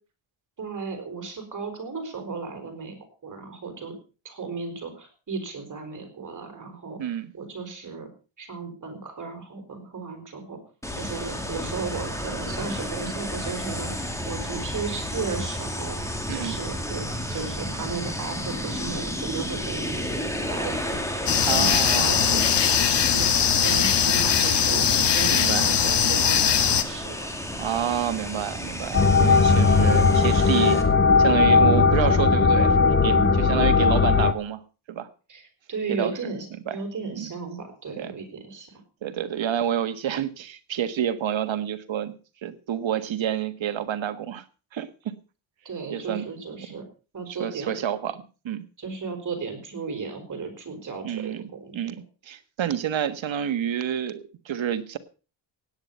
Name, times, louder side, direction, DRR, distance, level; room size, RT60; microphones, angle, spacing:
voice 1, 0.6-3.9 4.2-7.0 7.3-8.1 8.4-10.6 10.9-27.3 33.1-33.4 35.3-38.7 45.6-46.8 47.1-47.8 48.8-51.9, right 4 dB, 40° right, 6 dB, 5.0 m, -35 dB
voice 2, 7.0-7.3 16.3-16.6 21.5-22.1 25.3-25.7 27.6-30.8 31.2-34.6 34.9-35.1 35.9-36.3 36.7-36.8 37.1-37.3 38.0-38.1 39.0-42.1 42.4-44.4 44.7-45.1 45.9-46.2 47.3-48.2 48.4-48.6 51.0-51.4 51.7-55.0, right 9 dB, 70° right, 11 dB, 1.6 m, -28 dB
sound 1, 10.8-30.8, equal, 5° left, 2.4 m, -32 dB
sound 2, 21.3-26.8, left 8 dB, 60° left, 1.4 m, -21 dB
sound 3, 28.9-34.3, left 4 dB, 25° left, 1.0 m, -18 dB
17.0 x 9.8 x 5.5 m, 0.36 s
wide cardioid pair, 165°, 47 cm